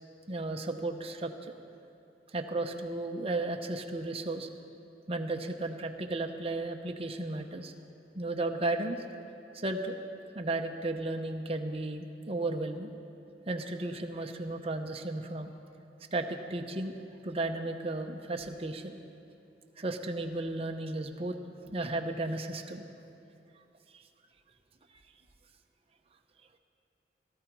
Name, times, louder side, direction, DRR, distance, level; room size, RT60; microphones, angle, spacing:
voice 1, 0.3-1.5 2.3-4.5 5.1-7.7 8.2-9.0 9.5-10.0 10.3-12.9 13.5-15.5 16.1-16.9 17.2-19.0 19.8-21.4 21.6-22.9 23.9-24.0, right 2 dB, 35° right, 4 dB, 0.8 m, -34 dB
16.5 x 13.5 x 4.6 m, 2.6 s
head